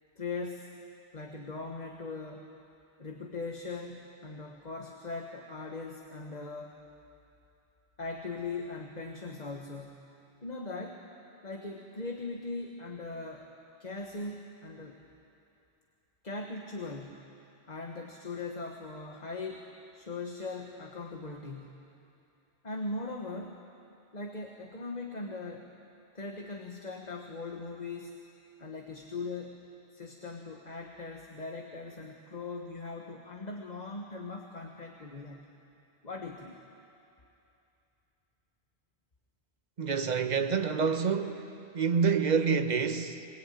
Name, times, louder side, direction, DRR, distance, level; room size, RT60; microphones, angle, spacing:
voice 1, 0.2-0.8 1.1-2.5 3.0-6.8 8.0-10.1 10.4-11.0 11.4-13.5 13.8-15.0 16.2-17.2 17.7-21.8 22.6-23.6 24.1-25.7 26.1-28.2 28.6-29.6 29.9-35.5 36.0-36.5, left 3 dB, 40° left, 2 dB, 1.5 m, -40 dB
voice 2, 39.8-41.4 41.7-43.4, right 6 dB, 45° right, 7 dB, 1.1 m, -27 dB
23.5 x 21.5 x 9.2 m, 2.8 s
omnidirectional pair, 1.1 m